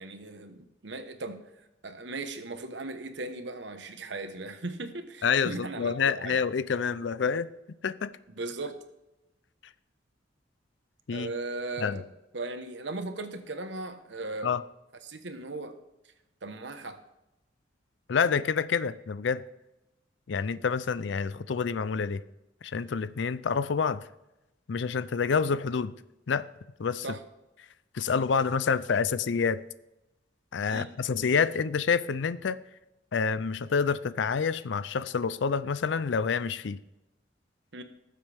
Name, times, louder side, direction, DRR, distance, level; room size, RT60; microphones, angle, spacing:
voice 1, 0.0-1.4 1.8-6.4 8.3-8.8 11.1-14.5 15.0-15.8 16.4-17.0 27.0-27.2 30.7-30.9 37.7-37.8, right 2 dB, 75° right, 1.2 m, -38 dB
voice 2, 5.2-7.5 7.8-8.1 11.1-11.3 11.8-12.0 14.4-14.6 18.1-19.4 20.3-22.2 22.6-24.0 24.7-25.9 26.3-26.5 26.8-27.0 27.9-29.6 30.5-32.6 33.1-36.8, left 5 dB, 75° left, 0.5 m, -28 dB
19.0 x 7.6 x 3.5 m
head